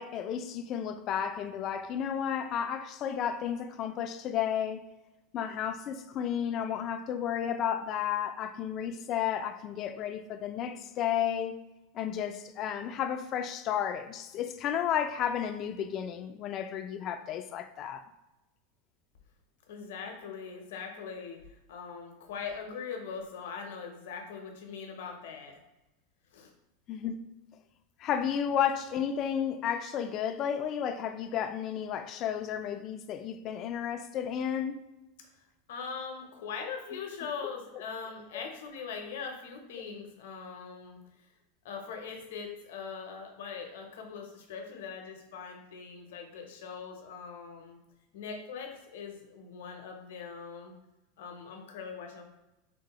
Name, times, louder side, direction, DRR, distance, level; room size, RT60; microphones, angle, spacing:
voice 1, 0.0-4.9 5.3-11.6 11.9-18.0 26.9-27.2 28.0-34.8, left 9 dB, 40° left, 0.3 m, -32 dB
voice 2, 19.7-25.6 26.3-26.5 35.7-41.0 41.6-47.8 48.1-50.7 51.2-52.2, left 6 dB, 80° left, 0.7 m, -41 dB
3.7 x 2.1 x 2.9 m
supercardioid pair, 125°, 0 cm